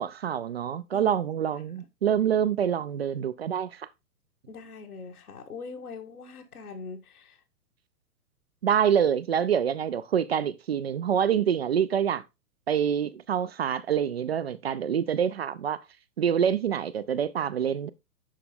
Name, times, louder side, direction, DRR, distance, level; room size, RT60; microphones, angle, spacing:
voice 1, 0.0-3.9 8.6-12.2 12.7-15.8 16.2-17.9, right 8 dB, 40° right, 0.5 m, -26 dB
voice 2, 4.5-7.4, left 4 dB, 65° left, 1.7 m, -42 dB
11.0 x 4.2 x 3.7 m
figure-of-eight pair, 115°, 49 cm